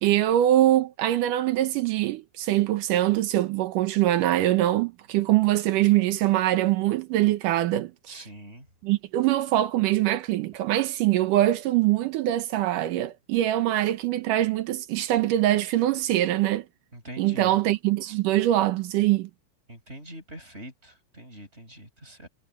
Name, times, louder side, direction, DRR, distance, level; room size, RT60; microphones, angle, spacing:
voice 1, 0.0-8.3 8.8-16.7 17.2-19.3, right 14 dB, 85° right, 2.6 m, -23 dB
voice 2, 8.1-8.7 16.9-17.6 19.7-22.3, equal, 20° right, 7.9 m, -43 dB
omnidirectional pair, 3.6 m